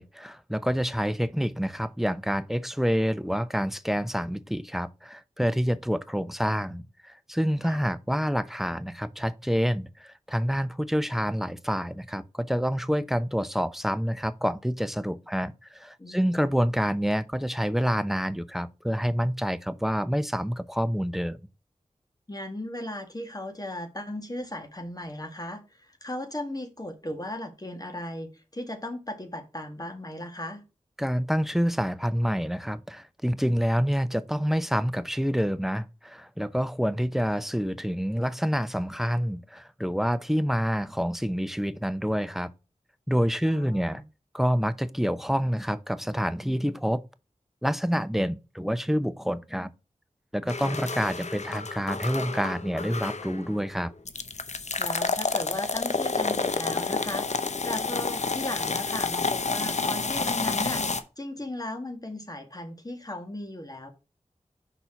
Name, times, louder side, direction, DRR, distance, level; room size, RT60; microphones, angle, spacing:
voice 1, 0.0-21.4 31.0-42.5 43.1-44.0 44.3-47.0 47.6-49.7 50.3-53.9, equal, ahead, 0.6 m, -27 dB
voice 2, 16.0-16.5 22.3-30.6 43.4-44.0 50.6-50.8 54.8-57.3 57.6-60.8 61.2-63.9, left 1 dB, 30° left, 1.5 m, -36 dB
sound 1, 50.5-53.6 54.1-61.0, left 4 dB, 60° left, 0.7 m, -29 dB
5.7 x 4.1 x 5.9 m
cardioid pair, 45°, 13 cm